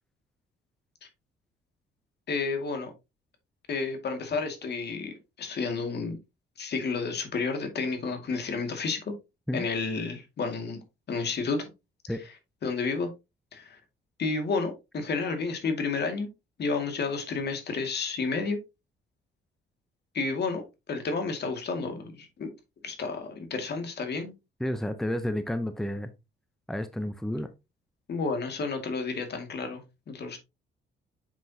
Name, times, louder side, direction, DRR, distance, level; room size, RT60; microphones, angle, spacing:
voice 1, 2.3-2.9 3.7-6.2 6.6-9.1 9.5-10.8 11.1-11.7 12.6-13.1 13.5-13.8 14.2-16.3 16.6-18.6 20.1-22.5 22.8-24.3 28.1-30.4, left 4 dB, 55° left, 2.2 m, -31 dB
voice 2, 24.6-26.1 26.7-27.5, left 1 dB, ahead, 0.7 m, -31 dB
7.2 x 6.0 x 2.8 m
cardioid pair, 90°, 20 cm